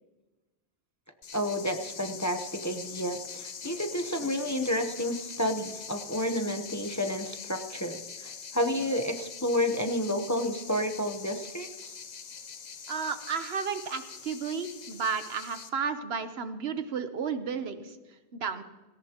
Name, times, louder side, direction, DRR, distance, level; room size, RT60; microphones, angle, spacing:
sound 1, 1.2-15.7, left 6 dB, 45° left, 0.8 m, -43 dB
voice 1, 1.3-12.0, left 1 dB, 20° left, 6 dB, 0.8 m, -30 dB
voice 2, 12.9-18.0 18.3-18.6, right 6 dB, 75° right, 10 dB, 1.2 m, -33 dB
17.5 x 17.5 x 2.9 m, 1.1 s
omnidirectional pair, 1.1 m